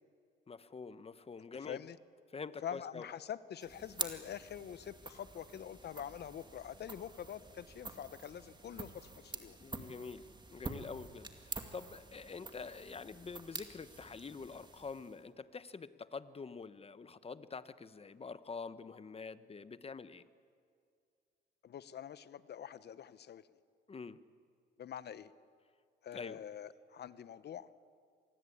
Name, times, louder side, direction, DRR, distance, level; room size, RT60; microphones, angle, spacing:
voice 1, 0.5-1.8 2.3-3.0 9.6-20.2 23.9-24.2 26.1-26.4, left 5 dB, 30° left, 14 dB, 1.1 m, -46 dB
voice 2, 1.6-2.0 2.6-9.6 21.6-23.5 24.8-25.3 26.0-27.7, left 9 dB, 60° left, 15 dB, 1.0 m, -45 dB
sound 1, 3.6-15.3, right 3 dB, 20° right, 2.2 m, -47 dB
26.0 x 20.0 x 8.6 m, 2.2 s
cardioid pair, 90°, 20 cm